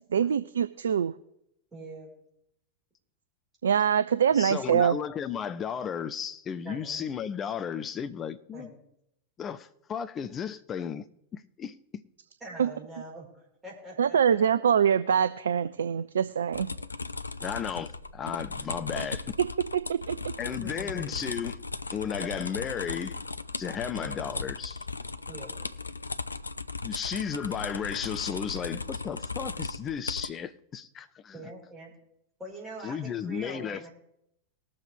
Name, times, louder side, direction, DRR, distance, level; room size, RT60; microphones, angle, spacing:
voice 1, 0.1-1.1 3.6-5.0 12.6-12.7 14.0-16.7 19.0-19.1 19.9-20.3, right 8 dB, 65° right, 0.3 m, -24 dB
voice 2, 1.7-2.1 6.6-7.0 8.5-8.8 12.4-13.3 13.6-14.7 20.6-21.2 24.0-24.2 25.3-25.5 31.3-31.9 32.4-33.9, right 2 dB, 15° right, 4.8 m, -43 dB
voice 3, 4.3-8.7 9.4-11.1 11.3-12.0 17.4-19.4 20.4-21.6 21.9-23.2 23.6-24.9 26.8-31.3 32.8-33.9, left 7 dB, 25° left, 0.7 m, -34 dB
sound 1, 16.5-30.3, left 3 dB, 80° left, 0.4 m, -37 dB
20.0 x 7.0 x 3.4 m
figure-of-eight pair, 90°, 0 cm